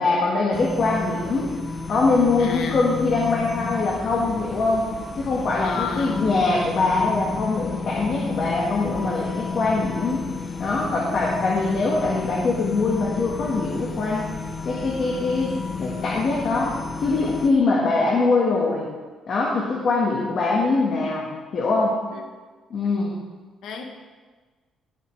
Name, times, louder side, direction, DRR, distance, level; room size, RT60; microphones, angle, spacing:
voice 1, 0.0-1.5 1.9-14.3 14.7-15.5 15.8-18.9 19.3-22.0 22.7-23.1, left 3 dB, 45° left, -4 dB, 1.6 m, -23 dB
sound 1, 0.5-17.5, left 4 dB, 25° left, 0.9 m, -32 dB
voice 2, 2.4-2.8 5.6-6.3 22.1-22.2 23.6-23.8, left 6 dB, 65° left, 4 dB, 1.2 m, -32 dB
19.0 x 7.1 x 3.4 m, 1.3 s
cardioid pair, 165°, 0 cm